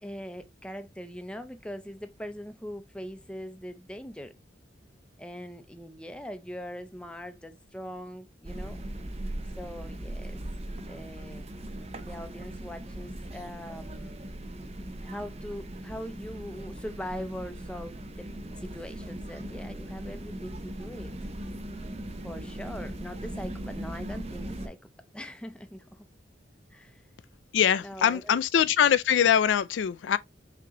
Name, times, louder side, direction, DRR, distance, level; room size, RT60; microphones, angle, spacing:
voice 1, 0.0-4.3 5.2-8.8 9.6-10.4 10.9-11.5 12.0-14.2 15.0-18.3 18.6-21.1 22.2-24.8 25.1-26.1 26.7-27.0 27.8-28.7, equal, 5° left, 0.5 m, -41 dB
sound 1, 8.4-24.7, right 1 dB, 35° right, 0.6 m, -39 dB
voice 2, 27.5-30.2, left 8 dB, 80° left, 0.3 m, -23 dB
5.9 x 3.0 x 2.9 m
head